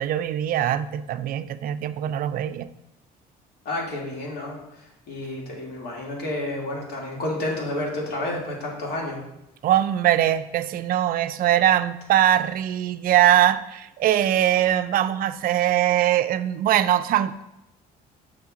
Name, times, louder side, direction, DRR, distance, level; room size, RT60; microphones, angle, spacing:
voice 1, 0.0-2.7 9.6-17.4, right 11 dB, 60° right, 12 dB, 0.4 m, -22 dB
voice 2, 3.6-4.6 5.1-9.2, left 1 dB, 70° left, -2 dB, 2.3 m, -30 dB
6.3 x 3.7 x 6.0 m, 0.87 s
cardioid pair, 110°, 17 cm